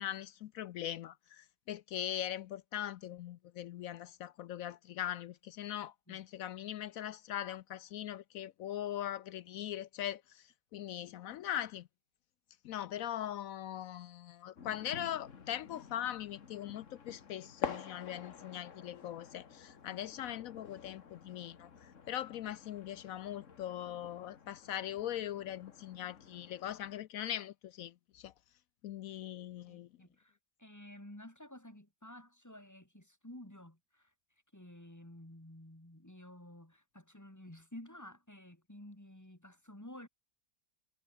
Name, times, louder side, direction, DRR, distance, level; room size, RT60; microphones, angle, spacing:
voice 1, 0.0-11.9 12.6-28.3 28.8-29.9, left 11 dB, 70° left, 0.8 m, -41 dB
sound 1, 14.6-27.0, left 6 dB, 45° left, 1.8 m, -49 dB
voice 2, 29.7-34.1 34.5-40.1, left 1 dB, 10° left, 2.9 m, -52 dB
omnidirectional pair, 1.8 m